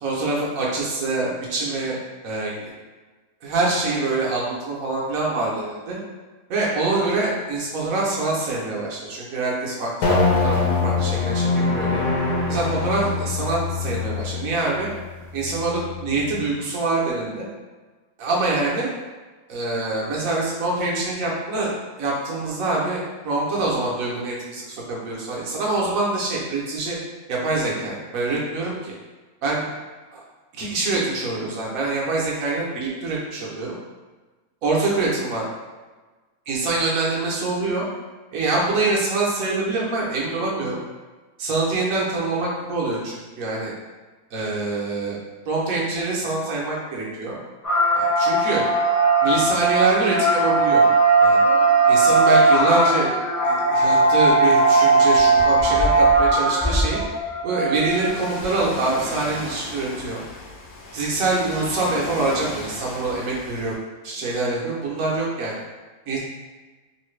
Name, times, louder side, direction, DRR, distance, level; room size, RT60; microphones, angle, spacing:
voice 1, 0.0-2.0 2.2-2.7 3.4-6.0 6.5-12.0 12.5-14.9 15.3-17.5 18.2-18.9 19.5-21.7 22.0-27.0 27.3-28.9 29.4-29.7 30.1-30.2 30.5-33.7 34.6-35.4 36.5-37.9 38.3-40.8 41.4-43.7 44.3-45.2 45.5-47.4 47.9-48.6 49.2-50.8 51.2-51.4 51.9-53.1 53.4-57.0 57.4-60.2 60.9-63.8 64.0-65.5 66.1-66.2, right 3 dB, 60° right, -4 dB, 1.2 m, -25 dB
sound 1, 10.0-16.5, left 4 dB, 85° left, 1.2 m, -24 dB
sound 2, 47.6-59.1, right 3 dB, 20° left, 0.5 m, -18 dB
Ocean, 57.9-63.7, left 2 dB, 70° left, 1.1 m, -36 dB
3.2 x 2.7 x 3.2 m, 1.3 s
omnidirectional pair, 1.7 m